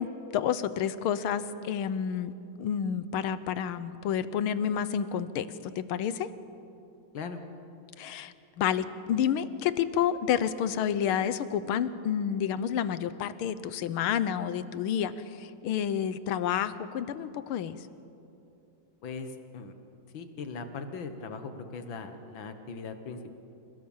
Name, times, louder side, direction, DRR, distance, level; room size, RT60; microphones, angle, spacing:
voice 1, 0.0-2.3 2.6-6.3 8.0-17.8, left 9 dB, 85° left, 14 dB, 1.7 m, -29 dB
voice 2, 19.0-19.7 20.1-23.3, left 4 dB, 70° left, 8 dB, 2.1 m, -39 dB
28.5 x 16.5 x 7.3 m, 2.8 s
omnidirectional pair, 2.3 m